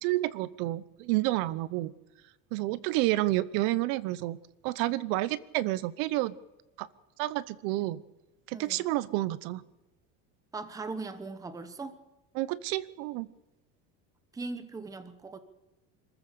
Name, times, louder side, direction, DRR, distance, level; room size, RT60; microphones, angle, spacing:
voice 1, 0.0-1.9 2.5-4.4 4.6-6.3 6.8-6.9 7.2-8.0 8.5-9.6 12.3-13.3, right 17 dB, 70° right, 19 dB, 0.9 m, -29 dB
voice 2, 8.5-8.8 10.5-12.0 14.3-15.4, right 3 dB, 10° right, 11 dB, 1.0 m, -39 dB
26.0 x 14.5 x 6.8 m, 1.1 s
cardioid pair, 165°, 38 cm